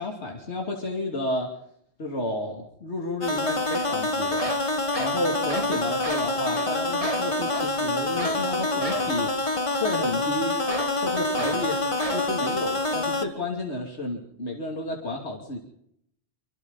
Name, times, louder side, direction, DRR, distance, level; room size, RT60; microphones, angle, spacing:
voice 1, 0.0-1.5 2.0-4.5 5.0-9.3 9.7-10.6 10.9-15.6, left 1 dB, 80° left, 0 dB, 3.1 m, -31 dB
sound 1, 3.2-13.2, left 2 dB, 30° left, 1.7 m, -26 dB
sound 2, 3.8-3.9 4.3-5.8 6.0-6.3 6.5-6.7 7.0-7.7 8.2-8.4 8.8-9.1 10.7-11.0 11.4-11.7 12.0-12.3, right 2 dB, 30° right, 2.5 m, -33 dB
26.0 x 25.0 x 4.1 m, 0.72 s
omnidirectional pair, 1.1 m